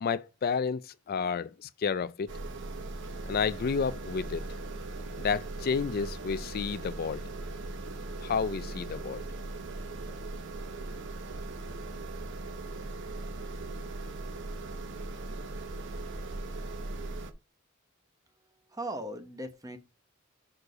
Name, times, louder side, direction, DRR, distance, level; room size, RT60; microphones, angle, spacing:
voice 1, 0.0-2.3 3.3-4.4 5.2-7.2 8.2-9.2, left 6 dB, 45° left, 0.4 m, -31 dB
sound 1, 2.3-17.3, right 2 dB, 60° right, 0.9 m, -39 dB
voice 2, 18.4-19.8, right 1 dB, 15° right, 1.1 m, -39 dB
6.3 x 4.8 x 4.9 m
head